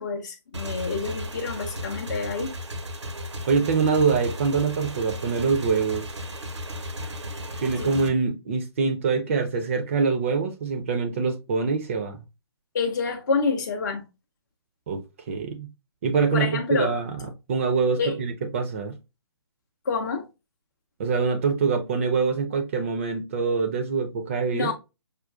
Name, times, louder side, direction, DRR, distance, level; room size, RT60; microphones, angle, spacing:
voice 1, 0.0-2.6 7.8-8.1 12.7-14.1 16.3-16.9 18.0-18.2 19.9-20.3 24.5-24.7, left 4 dB, 40° left, 0.5 m, -28 dB
Motorcycle / Engine, 0.5-8.1, left 1 dB, 80° right, 0.7 m, -35 dB
voice 2, 3.5-6.1 7.6-12.2 14.9-15.7 16.0-17.1 17.5-19.0 21.0-24.7, right 5 dB, 30° right, 0.4 m, -24 dB
4.9 x 2.2 x 2.2 m
figure-of-eight pair, 140°, 15 cm